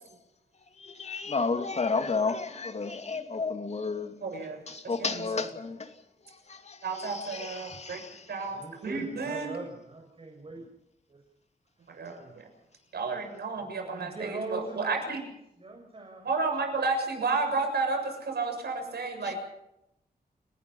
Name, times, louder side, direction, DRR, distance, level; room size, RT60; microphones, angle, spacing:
voice 1, 0.8-4.1 4.7-5.9 6.5-8.2, left 4 dB, 45° left, 2.7 m, -32 dB
voice 2, 4.2-5.5 6.8-8.0 8.3-9.5 11.9-12.5 12.9-15.2 16.2-19.4, right 4 dB, 90° right, 7.0 m, -32 dB
voice 3, 8.5-10.7 11.1-11.2 12.2-12.3 13.6-15.3 15.6-16.3, right 3 dB, 35° right, 6.3 m, -41 dB
30.0 x 18.5 x 5.6 m
wide cardioid pair, 120°, 16 cm